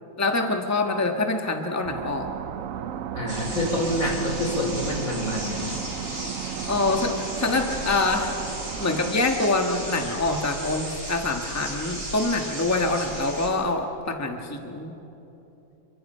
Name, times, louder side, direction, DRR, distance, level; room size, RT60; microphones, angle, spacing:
voice 1, 0.2-2.3 6.7-8.4 8.8-14.9, left 2 dB, 10° left, 4 dB, 1.3 m, -25 dB
sound 1, 1.8-9.1, right 9 dB, 75° right, 1.1 m, -35 dB
voice 2, 3.1-5.8, left 1 dB, 75° left, 1 dB, 4.3 m, -27 dB
sound 2, 3.3-13.5, right 1 dB, 50° right, 7.4 m, -36 dB
29.0 x 24.0 x 5.6 m, 3.0 s
omnidirectional pair, 1.5 m